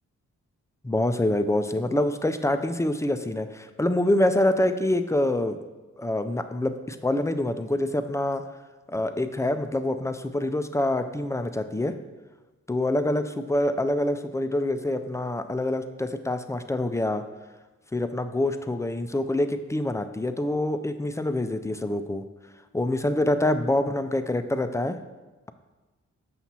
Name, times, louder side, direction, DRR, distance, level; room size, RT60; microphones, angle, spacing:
voice 1, 0.8-5.6 6.0-8.4 8.9-12.0 12.7-17.3 17.9-22.2 22.7-25.0, left 1 dB, 10° left, 9 dB, 0.3 m, -26 dB
5.9 x 5.7 x 2.8 m, 1.2 s
cardioid pair, 50°, 31 cm